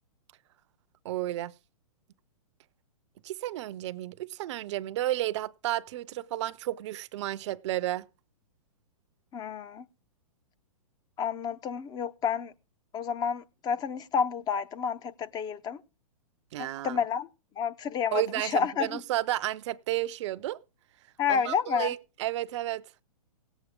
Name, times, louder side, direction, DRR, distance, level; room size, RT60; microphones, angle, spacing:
voice 1, 1.0-1.5 3.2-8.1 16.5-17.0 18.1-20.6 21.3-22.9, right 14 dB, 50° right, 0.5 m, -32 dB
voice 2, 9.3-9.8 11.2-12.5 12.9-15.8 16.6-17.3 17.6-19.0 21.2-21.9, left 7 dB, 20° left, 0.6 m, -30 dB
18.0 x 8.2 x 3.6 m
hypercardioid pair, 125°, 19 cm